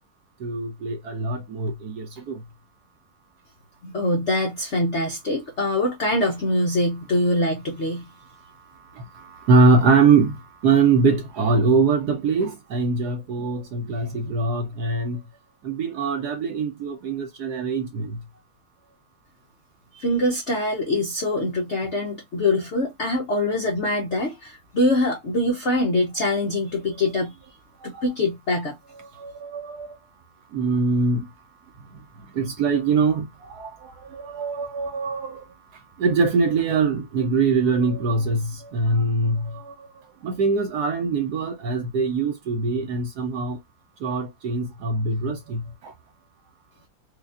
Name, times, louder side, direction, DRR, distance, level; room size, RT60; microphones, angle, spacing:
voice 1, 0.4-2.4 9.1-10.4 10.6-15.2 15.6-18.1 27.9-28.0 29.2-29.9 30.5-31.3 32.3-35.4 36.0-39.9 40.2-43.6 44.0-45.9, right 4 dB, 70° right, 1.0 m, -23 dB
voice 2, 3.8-8.1 19.9-27.3 27.8-28.8, left 1 dB, 65° left, 0.7 m, -24 dB
4.8 x 2.3 x 2.4 m
omnidirectional pair, 2.2 m